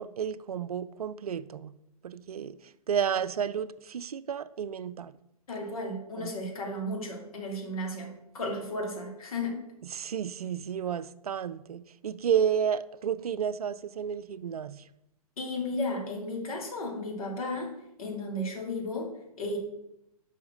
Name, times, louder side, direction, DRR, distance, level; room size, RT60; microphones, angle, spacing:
voice 1, 0.0-1.7 2.0-2.6 2.9-5.1 6.2-6.3 9.9-14.8, right 8 dB, 80° right, 0.5 m, -31 dB
voice 2, 5.5-9.6 15.4-17.7 18.0-19.6, left 1 dB, 70° left, 2.4 m, -34 dB
5.7 x 4.8 x 6.2 m
figure-of-eight pair, 120°, 19 cm